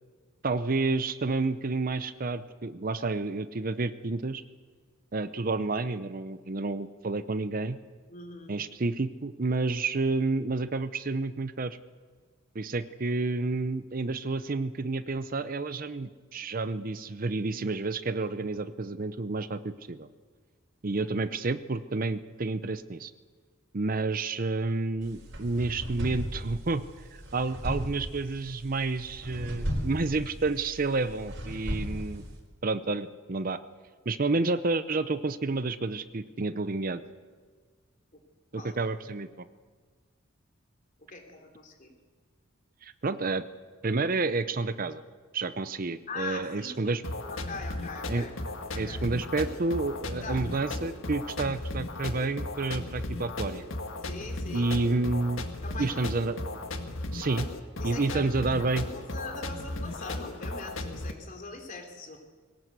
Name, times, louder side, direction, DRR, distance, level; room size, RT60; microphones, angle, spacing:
voice 1, 0.4-4.4 5.1-7.8 8.5-11.8 12.5-20.1 20.8-23.1 23.7-26.8 27.1-32.2 32.6-33.6 34.1-37.0 38.5-39.3 42.8-43.4 43.8-45.0 45.3-47.0 48.1-48.2 48.7-53.7 54.5-55.5 55.8-56.6 57.1-57.5 57.8-58.9, right 3 dB, 45° right, 12 dB, 0.7 m, -30 dB
voice 2, 8.1-8.5 20.9-21.1 38.1-38.2 38.5-38.8 41.1-41.9 46.1-48.3 48.7-49.0 50.2-50.5 54.1-54.7 55.6-56.0 57.8-58.6 58.9-62.2, left 3 dB, 40° left, 2 dB, 3.3 m, -42 dB
sound 1, 25.0-32.4, equal, 70° right, 4.4 m, -36 dB
sound 2, 47.0-61.1, left 2 dB, 80° left, 1.7 m, -36 dB
22.0 x 18.5 x 8.1 m, 1.6 s
head